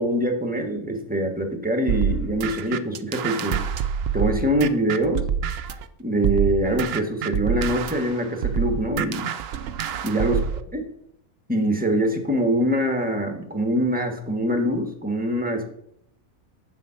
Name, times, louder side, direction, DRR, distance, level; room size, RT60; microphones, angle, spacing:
voice 1, 0.0-3.6 4.1-5.3 6.0-9.3 10.0-10.5 10.7-10.9 11.5-15.6, right 1 dB, 5° right, 4 dB, 1.1 m, -24 dB
sound 1, 1.9-5.8 6.2-10.6, right 7 dB, 65° right, 0.6 m, -27 dB
7.9 x 7.3 x 5.7 m, 0.73 s
omnidirectional pair, 1.6 m